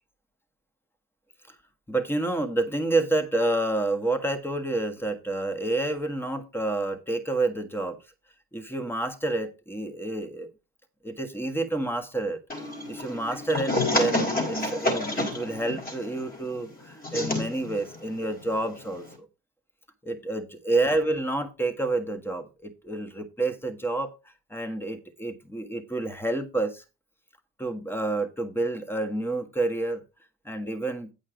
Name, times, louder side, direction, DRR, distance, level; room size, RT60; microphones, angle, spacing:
voice 1, 1.9-8.0 8.5-10.5 11.0-12.4 12.9-19.3 20.0-24.1 24.5-26.8 27.6-30.0 30.4-31.1, right 2 dB, 5° left, 1.6 m, -29 dB
sound 1, 12.5-19.2, left 2 dB, 30° left, 3.6 m, -30 dB
8.8 x 5.4 x 5.0 m
cardioid pair, 90°, 30 cm